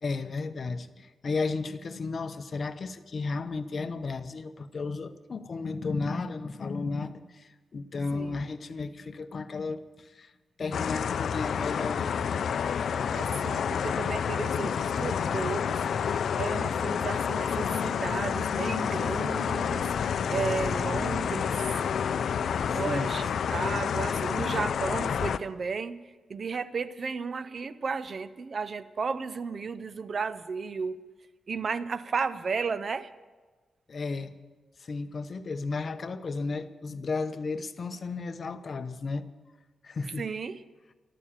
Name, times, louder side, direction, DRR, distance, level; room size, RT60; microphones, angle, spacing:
voice 1, 0.0-10.3 10.6-12.5 22.7-23.2 33.9-34.4 34.8-39.2 39.8-40.2, left 4 dB, 50° left, 11 dB, 0.8 m, -34 dB
sound 1, 10.7-25.4, left 7 dB, 75° left, 0.5 m, -29 dB
voice 2, 13.1-21.6 22.7-26.0 26.3-31.0 31.5-33.1 40.2-40.6, right 5 dB, 50° right, 15 dB, 0.6 m, -34 dB
13.5 x 12.5 x 7.3 m, 1.3 s
cardioid pair, 95°, 0 cm